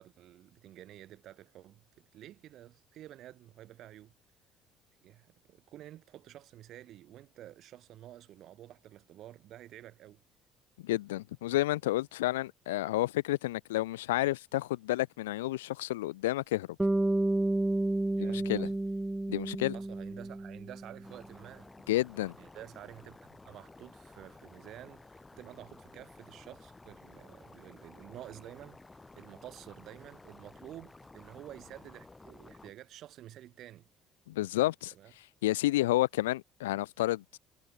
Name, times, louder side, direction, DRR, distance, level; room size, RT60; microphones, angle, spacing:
voice 1, 0.0-4.1 5.0-10.2 18.1-18.7 19.7-21.7 22.4-33.9 34.9-35.1, right 13 dB, 55° right, 5.1 m, -50 dB
voice 2, 10.8-16.7 18.2-18.7 19.3-19.8 21.9-22.3 34.3-34.9 35.4-37.2, left 16 dB, 80° left, 0.6 m, -30 dB
Bass guitar, 16.8-21.1, right 2 dB, 10° right, 0.5 m, -31 dB
sound 1, 21.0-32.7, left 3 dB, 20° left, 4.3 m, -54 dB
figure-of-eight pair, 55°, 0 cm